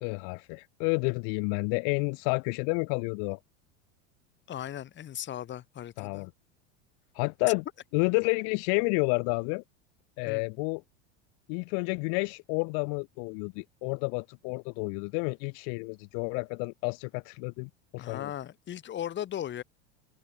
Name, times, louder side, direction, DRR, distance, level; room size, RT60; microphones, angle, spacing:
voice 1, 0.0-3.4 6.0-6.3 7.2-7.6 7.9-9.6 10.2-10.8 11.5-18.3, left 40 dB or more, 55° left, 0.6 m, -30 dB
voice 2, 4.5-6.3 10.2-10.4 18.0-19.6, left 11 dB, 30° left, 1.6 m, -37 dB
supercardioid pair, 115°, 35 cm